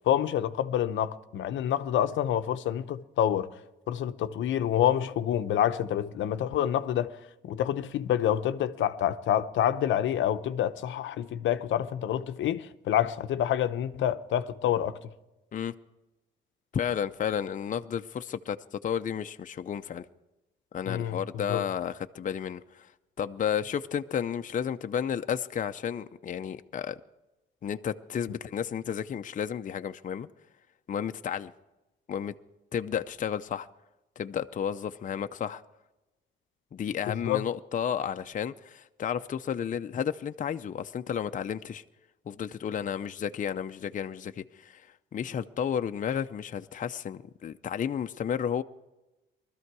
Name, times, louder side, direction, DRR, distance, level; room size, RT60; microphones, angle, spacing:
voice 1, 0.1-3.5 3.9-7.2 7.4-15.0 20.9-21.2 21.5-21.6 37.1-37.4, left 10 dB, 75° left, 0.7 m, -27 dB
voice 2, 16.7-20.1 20.7-22.9 23.2-27.0 27.6-30.3 30.9-31.5 32.1-32.3 32.7-33.7 34.2-35.6 36.7-41.8 42.3-44.9 45.1-48.6, left 8 dB, 40° left, 0.6 m, -32 dB
20.5 x 13.5 x 4.7 m
cardioid pair, 90°, 20 cm